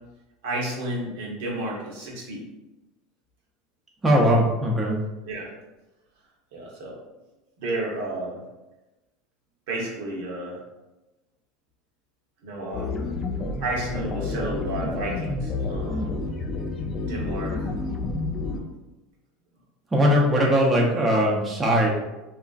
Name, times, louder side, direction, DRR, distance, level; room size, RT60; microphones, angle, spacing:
voice 1, 0.4-2.4 5.2-5.5 6.5-6.9 7.6-8.4 9.7-10.6 12.4-12.9 13.6-16.2 17.1-17.7 18.3-18.7 20.4-20.6, right 2 dB, 75° right, -2 dB, 0.8 m, -32 dB
voice 2, 4.0-5.0 19.9-21.9, equal, 20° right, -3 dB, 0.5 m, -20 dB
sound 1, 12.7-18.6, left 3 dB, 30° left, 0.4 m, -29 dB
2.9 x 2.4 x 2.3 m, 1.0 s
supercardioid pair, 125°, 0 cm